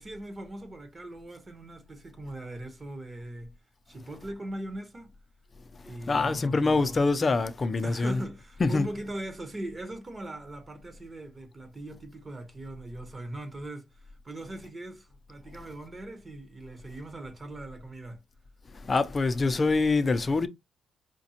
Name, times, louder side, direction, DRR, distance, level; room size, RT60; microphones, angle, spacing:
voice 1, 0.0-3.5 3.9-5.1 5.8-6.9 7.2-7.4 7.8-18.2, right 1 dB, 25° right, 1.0 m, -40 dB
voice 2, 6.1-8.3 8.6-9.0 18.8-20.5, left 3 dB, 30° left, 0.5 m, -25 dB
5.1 x 2.3 x 2.8 m
cardioid pair, 90°, 0 cm